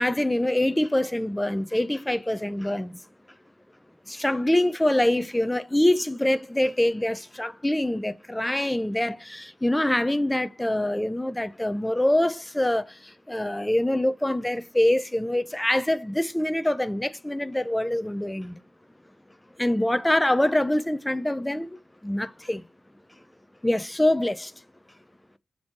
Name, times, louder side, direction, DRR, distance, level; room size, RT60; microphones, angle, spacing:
voice 1, 0.0-3.0 4.1-12.9 13.3-18.6 19.6-21.8 22.0-22.6 23.6-24.5, left 1 dB, 10° left, 0.6 m, -24 dB
7.1 x 4.5 x 4.6 m
wide cardioid pair, 130°, 0 cm